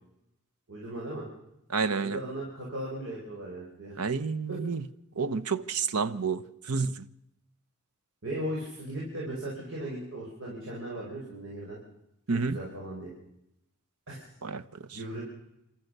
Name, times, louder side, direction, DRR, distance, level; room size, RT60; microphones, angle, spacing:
voice 1, 0.7-1.3 2.0-3.9 4.5-4.6 8.2-11.8 12.3-13.1 14.1-14.2 14.9-15.2, right 1 dB, 65° right, 5.5 m, -37 dB
voice 2, 1.7-2.2 4.0-4.8 5.2-7.0 12.3-12.6 14.4-14.6 14.9-15.0, right 5 dB, 85° right, 0.9 m, -29 dB
28.5 x 14.0 x 6.7 m
head